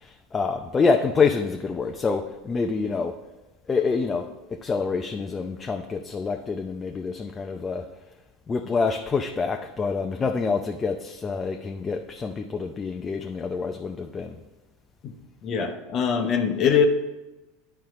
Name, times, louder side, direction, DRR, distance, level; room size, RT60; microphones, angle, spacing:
voice 1, 0.0-3.2 3.7-7.9 8.5-14.4, left 4 dB, 25° left, 0.6 m, -26 dB
voice 2, 15.4-16.9, left 6 dB, 45° left, 0.9 m, -22 dB
10.5 x 4.5 x 3.7 m
hypercardioid pair, 80°, 0 cm